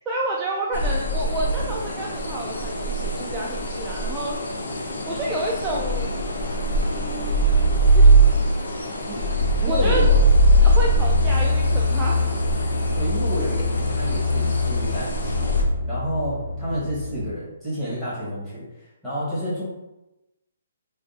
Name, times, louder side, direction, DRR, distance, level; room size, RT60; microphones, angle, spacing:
voice 1, 0.1-4.3 5.1-6.1 6.9-8.1 8.4-8.5 9.3-9.4 9.7-10.0 10.6-12.4 17.8-18.0, right 2 dB, 15° right, -4 dB, 0.3 m, -30 dB
sound 1, 0.7-15.6, right 1 dB, 85° left, 0.6 m, -21 dB
sound 2, 9.2-17.3, left 3 dB, 85° right, 0.4 m, -25 dB
voice 2, 9.6-10.2 12.9-15.5 15.9-18.6 19.0-19.6, equal, 10° left, -11 dB, 1.2 m, -29 dB
3.4 x 2.3 x 2.6 m, 0.97 s
hypercardioid pair, 160°, 0 cm